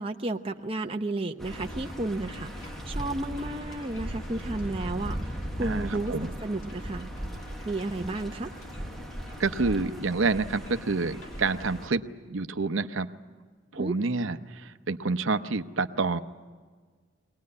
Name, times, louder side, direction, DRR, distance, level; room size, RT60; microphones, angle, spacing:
voice 1, 0.0-2.5 2.9-5.2 5.6-6.1 6.4-7.1 7.7-8.5 13.8-13.9, right 2 dB, 25° right, 4 dB, 0.7 m, -32 dB
sound 1, 1.4-11.9, equal, ahead, 0.9 m, -38 dB
sound 2, 1.5-11.8, left 1 dB, 80° left, 2.5 m, -48 dB
voice 2, 5.6-6.3 9.4-12.0 12.3-13.1 13.7-16.2, right 3 dB, 75° right, 9 dB, 0.7 m, -28 dB
22.5 x 19.0 x 9.7 m, 1.5 s
head